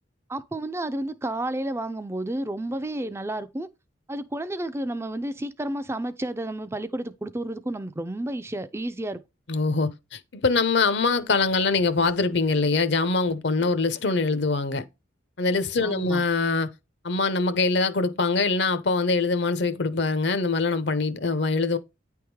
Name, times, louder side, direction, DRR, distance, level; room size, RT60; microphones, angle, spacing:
voice 1, 0.3-3.7 4.1-9.2 15.8-16.2, right 1 dB, 15° right, 0.4 m, -31 dB
voice 2, 9.5-14.8 15.4-16.7 17.0-21.8, left 3 dB, 60° left, 0.7 m, -23 dB
9.5 x 3.5 x 4.7 m
head